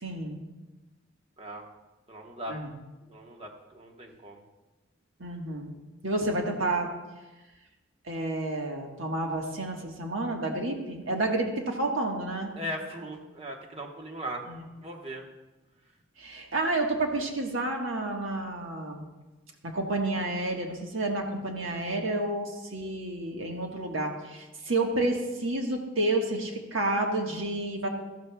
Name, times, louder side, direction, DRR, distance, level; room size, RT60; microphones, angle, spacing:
voice 1, 0.0-0.4 2.5-2.7 5.2-5.7 6.0-6.9 8.0-12.5 14.5-14.6 16.2-19.0 19.6-27.9, right 2 dB, 80° right, 1 dB, 1.5 m, -30 dB
voice 2, 2.1-2.6 3.1-4.4 12.5-14.4 14.8-15.2, equal, 30° right, 1 dB, 1.2 m, -38 dB
14.0 x 12.5 x 2.3 m, 1.1 s
head